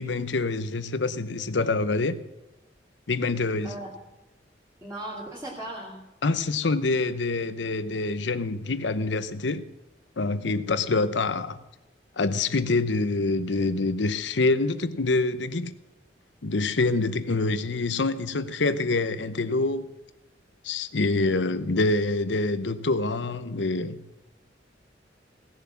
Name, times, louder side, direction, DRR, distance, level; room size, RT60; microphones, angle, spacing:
voice 1, 0.0-2.2 3.1-3.7 6.2-9.6 10.2-11.6 12.2-15.7 16.4-19.9 20.6-24.0, left 3 dB, 75° left, 0.8 m, -26 dB
voice 2, 4.8-6.0, right 1 dB, 15° right, 2.7 m, -37 dB
17.5 x 7.2 x 7.1 m
head